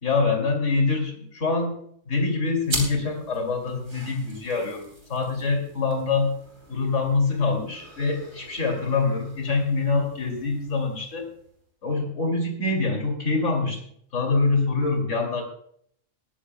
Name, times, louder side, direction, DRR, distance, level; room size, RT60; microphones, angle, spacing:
voice 1, 0.0-1.8 2.1-6.3 6.7-11.3 11.8-13.8 14.1-15.4, left 3 dB, 65° left, 2 dB, 3.1 m, -25 dB
sound 1, 2.6-11.6, right 2 dB, 70° right, 3.7 m, -40 dB
19.5 x 14.0 x 2.2 m, 0.64 s
omnidirectional pair, 1.4 m